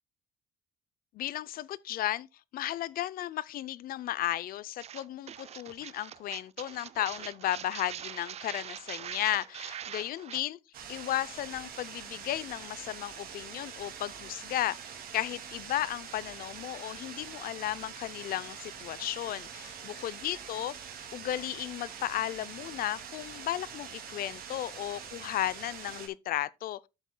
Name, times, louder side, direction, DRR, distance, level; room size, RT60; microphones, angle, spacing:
voice 1, 1.1-2.3 2.5-10.6 10.9-19.7 20.0-20.8 21.1-26.8, left 13 dB, 60° left, 0.5 m, -34 dB
sound 1, 4.8-10.4, right 10 dB, 40° right, 0.4 m, -43 dB
sound 2, 10.7-26.1, right 7 dB, 60° right, 2.4 m, -44 dB
11.5 x 8.2 x 2.2 m
cardioid pair, 110°, 17 cm